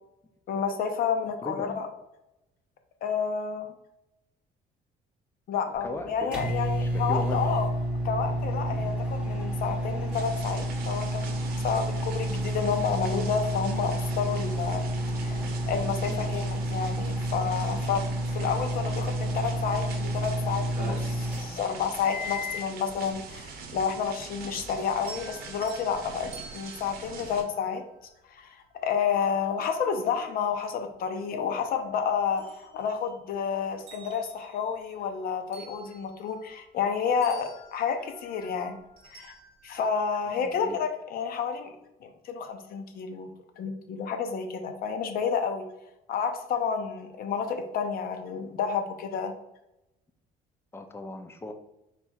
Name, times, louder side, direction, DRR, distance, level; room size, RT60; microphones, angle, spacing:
voice 1, 0.5-1.9 3.0-3.7 5.5-7.6 8.0-14.8 15.2-27.8 28.3-28.6 28.8-38.8 39.1-39.3 39.6-41.7 42.0-43.3 43.6-45.7 46.1-49.3, left 6 dB, 60° left, 6 dB, 0.7 m, -30 dB
voice 2, 1.4-1.8 5.8-7.4 8.7-8.8 16.1-16.3 24.5-24.7 27.1-27.3 40.3-40.8 50.7-51.5, left 2 dB, 15° left, 6 dB, 0.5 m, -39 dB
sound 1, 5.7-22.7, right 1 dB, 5° right, 1.3 m, -30 dB
sound 2, 10.1-27.4, right 5 dB, 65° right, 0.8 m, -44 dB
sound 3, 24.9-28.3 29.9-30.0 30.5-31.8 32.1-33.4 33.7-36.9 37.2-39.9, right 3 dB, 40° right, 1.6 m, -51 dB
4.4 x 4.2 x 2.4 m, 0.88 s
cardioid pair, 110°, 17 cm